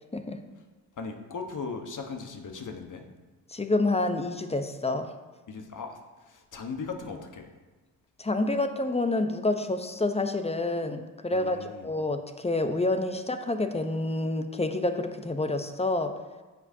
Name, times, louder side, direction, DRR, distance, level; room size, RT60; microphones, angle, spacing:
voice 1, 1.0-3.1 5.5-7.5 11.3-11.9, left 4 dB, 45° left, 4 dB, 1.3 m, -38 dB
voice 2, 3.5-5.1 8.2-16.1, left 2 dB, 15° left, 8 dB, 0.8 m, -28 dB
14.0 x 4.9 x 2.8 m, 1.3 s
hypercardioid pair, 50°, 44 cm